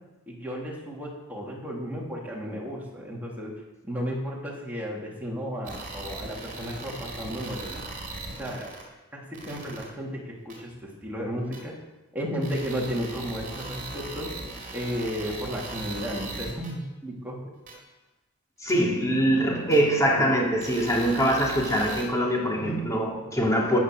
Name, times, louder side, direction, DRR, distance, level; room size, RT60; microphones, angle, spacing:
voice 1, 0.3-3.5 3.8-7.8 8.4-8.7 9.1-11.7 12.1-14.3 14.7-17.4, equal, 10° right, 3.5 m, -33 dB
sound 1, 5.7-8.8 9.3-9.8 10.5-10.6 11.5-11.6 12.4-16.7 17.7-17.8 18.7-18.8 19.7-19.8 20.6-22.0, right 2 dB, 40° right, 4.3 m, -38 dB
voice 2, 18.6-23.8, equal, 15° left, 3.0 m, -23 dB
15.0 x 10.0 x 6.6 m
head